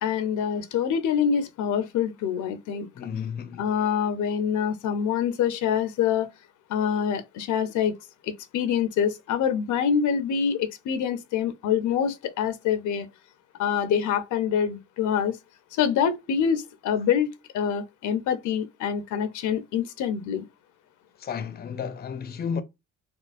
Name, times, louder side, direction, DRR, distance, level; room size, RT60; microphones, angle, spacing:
voice 1, 0.0-2.9 3.6-6.3 6.7-8.0 8.2-13.1 13.6-15.4 15.7-20.5, left 8 dB, 80° left, 0.6 m, -25 dB
voice 2, 2.9-3.7 21.2-22.6, left 6 dB, 30° left, 0.5 m, -32 dB
4.3 x 2.1 x 2.4 m
cardioid pair, 90°, 30 cm